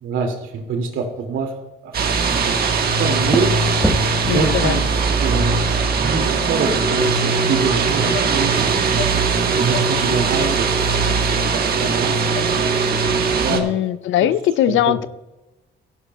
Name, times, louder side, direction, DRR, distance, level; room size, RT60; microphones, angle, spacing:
voice 1, 0.0-1.5 1.8-1.9 2.2-3.6 4.2-5.6 6.0-8.9 9.5-12.8 13.2-13.8 14.2-14.3 14.6-15.0, right 4 dB, 80° right, 3 dB, 2.4 m, -26 dB
sound 1, 1.9-13.6, right 5 dB, 50° right, 1.4 m, -20 dB
sound 2, 2.1-7.5, equal, ahead, 1.4 m, -30 dB
voice 2, 4.3-4.8 13.5-15.1, left 12 dB, 80° left, 16 dB, 0.5 m, -20 dB
sound 3, 8.1-8.3 8.9-9.2 9.6-10.0 10.3-10.5 11.0-11.1 11.7-11.8 12.3-12.5, left 6 dB, 50° left, 0.8 m, -32 dB
15.5 x 11.0 x 2.3 m, 1.0 s
cardioid pair, 90°, 20 cm